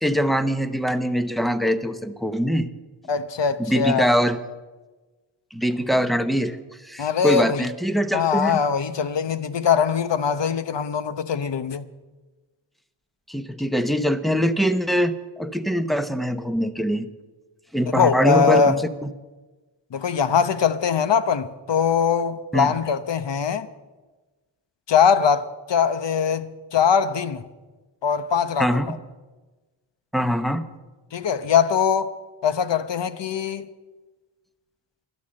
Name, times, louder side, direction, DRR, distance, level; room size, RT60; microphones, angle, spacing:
voice 1, 0.0-2.7 3.6-4.4 5.5-6.6 6.8-8.6 13.3-17.1 17.7-19.1 22.5-22.7 28.6-29.0 30.1-30.7, equal, ahead, 0.9 m, -23 dB
voice 2, 3.1-4.1 7.0-7.7 8.1-11.9 17.9-18.8 19.9-23.7 24.9-27.4 28.0-29.0 31.1-32.1 32.4-33.7, left 6 dB, 60° left, 0.9 m, -22 dB
12.5 x 11.0 x 7.6 m
cardioid pair, 65°, 48 cm